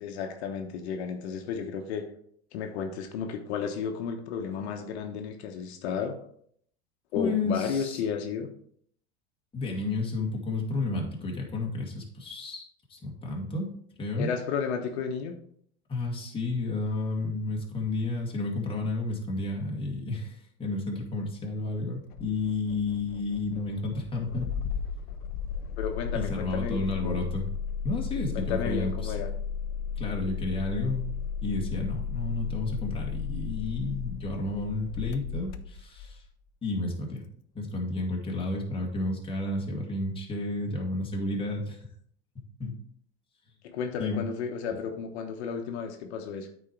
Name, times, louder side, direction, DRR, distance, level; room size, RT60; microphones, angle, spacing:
voice 1, 0.0-2.1 2.5-6.2 7.1-8.5 14.2-15.3 25.8-27.2 28.3-29.3 43.6-46.5, left 6 dB, 75° left, 5 dB, 1.1 m, -33 dB
voice 2, 7.1-8.0 9.5-13.7 14.0-14.3 15.9-24.5 26.1-27.4 27.8-29.1 30.0-31.1 31.4-36.2 36.6-37.2 37.5-41.8 42.4-42.8 44.0-44.2, left 2 dB, 15° left, -1 dB, 2.0 m, -31 dB
Engine starting, 22.1-36.2, left 7 dB, 60° left, 0.8 m, -34 dB
8.8 x 4.5 x 4.6 m, 0.65 s
supercardioid pair, 125°, 33 cm